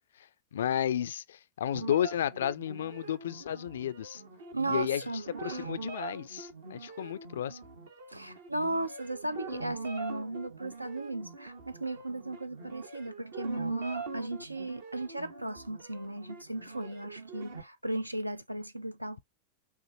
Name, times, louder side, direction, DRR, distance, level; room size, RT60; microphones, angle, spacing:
voice 1, 0.5-4.2 4.7-5.0 5.4-7.6, left 10 dB, 60° left, 0.3 m, -32 dB
sound 1, 1.7-17.6, right 4 dB, 65° right, 1.0 m, -44 dB
voice 2, 4.5-5.7 8.1-19.2, right 2 dB, 85° right, 0.4 m, -36 dB
5.8 x 2.5 x 2.7 m
figure-of-eight pair, 90°, 0 cm